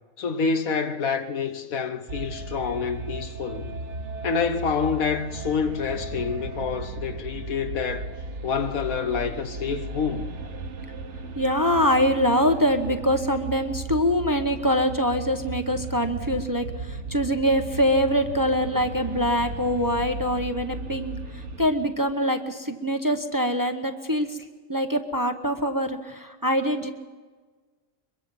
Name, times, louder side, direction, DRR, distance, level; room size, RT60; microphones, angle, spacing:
voice 1, 0.2-3.7 4.2-8.1 8.4-10.3, left 5 dB, 85° left, 1.7 m, -27 dB
sound 1, 2.1-21.7, right 2 dB, 60° right, 1.4 m, -36 dB
voice 2, 11.3-24.4 24.7-26.9, equal, 15° right, 0.8 m, -24 dB
23.0 x 23.0 x 5.5 m
omnidirectional pair, 1.4 m